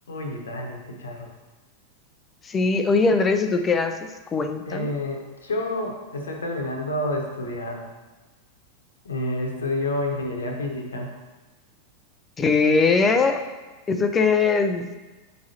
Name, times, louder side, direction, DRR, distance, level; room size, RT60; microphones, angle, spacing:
voice 1, 0.1-1.3 4.7-7.8 9.0-11.1, left 1 dB, 70° left, 2 dB, 1.1 m, -29 dB
voice 2, 2.4-4.9 12.4-13.4 13.9-14.9, left 4 dB, 20° left, 8 dB, 0.5 m, -21 dB
9.3 x 4.6 x 2.9 m, 1.2 s
figure-of-eight pair, 90°, 0 cm